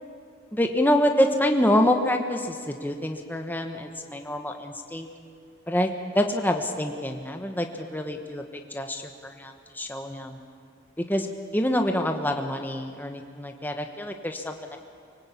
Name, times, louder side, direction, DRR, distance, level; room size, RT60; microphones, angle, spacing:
voice 1, 0.5-5.1 5.7-5.9 6.1-8.4 8.7-9.0 9.4-10.4 11.1-11.3 11.5-14.5, left 1 dB, 10° left, 4 dB, 1.3 m, -26 dB
25.0 x 18.0 x 8.6 m, 2.3 s
head